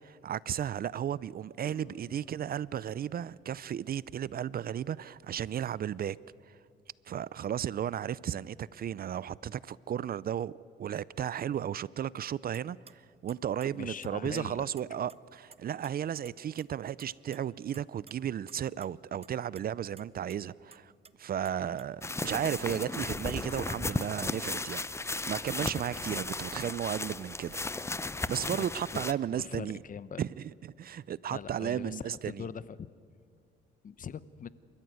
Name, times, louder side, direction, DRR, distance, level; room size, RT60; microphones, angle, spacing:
voice 1, 0.0-6.2 6.4-6.6 7.1-10.5 10.8-20.9 21.2-27.8 28.3-29.8 30.2-32.4, right 9 dB, 50° right, 0.5 m, -34 dB
Acoustic guitar, 1.6-5.7, left 9 dB, 60° left, 2.7 m, -59 dB
sound 1, 12.5-12.6 12.9-13.0 13.3-14.4 14.8-15.6 15.8-15.9 16.2-16.7 16.9-17.4 17.7-18.9 19.2-19.6 20.0-20.1 20.3-20.4 20.7-21.1 21.4-21.9 22.2-22.6 22.9-23.0 23.3-23.4 23.7-24.8 25.2-25.6, right 5 dB, 30° right, 0.8 m, -52 dB
voice 2, 13.7-14.6 28.4-28.6 28.9-29.0 29.3-30.2 31.3-32.9 33.8-34.5, left 7 dB, 40° left, 0.8 m, -41 dB
sound 2, 22.0-29.1, left 2 dB, 15° left, 0.7 m, -35 dB
28.5 x 14.0 x 9.3 m
cardioid pair, 90°, 20 cm